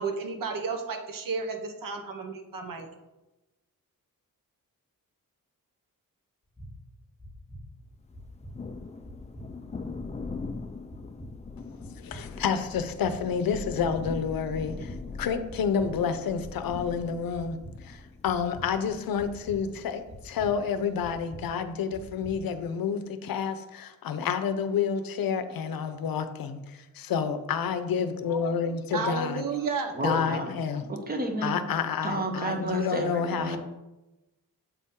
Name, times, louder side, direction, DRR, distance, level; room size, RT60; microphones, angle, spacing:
voice 1, 0.0-2.9 28.9-30.0, right 4 dB, 65° right, 5 dB, 0.9 m, -32 dB
sound 1, 6.6-6.7 7.2-7.6 8.1-8.5 9.0-9.4 9.9-10.4 10.9-11.3 11.8-12.2 12.7-13.1 13.6-14.0 14.5-15.0 15.5-15.9 16.4-16.8 17.3-17.7 18.2-18.6 19.1-19.6 20.1-20.5 21.0-21.4 21.9-22.3, equal, 5° right, 2.2 m, -45 dB
Thunder, 8.1-21.3, left 4 dB, 20° left, 0.4 m, -42 dB
voice 2, 12.0-29.4 30.0-30.8 31.4-33.6, left 6 dB, 75° left, 10 dB, 0.6 m, -29 dB
voice 3, 29.9-30.5 30.9-31.6 32.0-33.6, right 1 dB, 25° right, 4 dB, 0.9 m, -31 dB
7.1 x 4.2 x 3.6 m, 1.0 s
wide cardioid pair, 140°, 35 cm